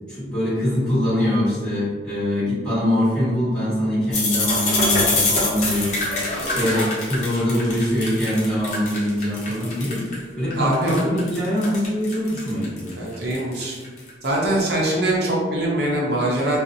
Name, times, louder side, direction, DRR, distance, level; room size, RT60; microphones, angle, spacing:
voice 1, 0.1-12.9, equal, 5° left, -11 dB, 1.2 m, -23 dB
sound 1, 4.1-10.1 10.5-14.4, left 2 dB, 40° left, 0.6 m, -24 dB
voice 2, 10.6-11.0 13.0-13.8 14.2-16.6, right 1 dB, 60° right, -3 dB, 0.6 m, -22 dB
2.5 x 2.0 x 2.6 m, 1.4 s
head